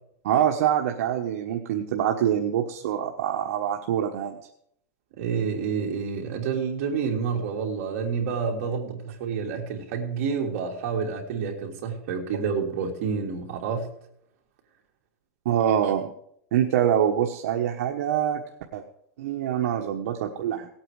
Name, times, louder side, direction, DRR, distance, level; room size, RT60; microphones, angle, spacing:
voice 1, 0.2-4.4 15.4-16.1 16.5-18.4 18.7-18.8 19.2-20.7, right 10 dB, 80° right, 2 dB, 1.3 m, -25 dB
voice 2, 5.2-13.9, right 6 dB, 60° right, 0 dB, 3.2 m, -29 dB
18.0 x 8.8 x 4.9 m, 0.69 s
supercardioid pair, 155°, 8 cm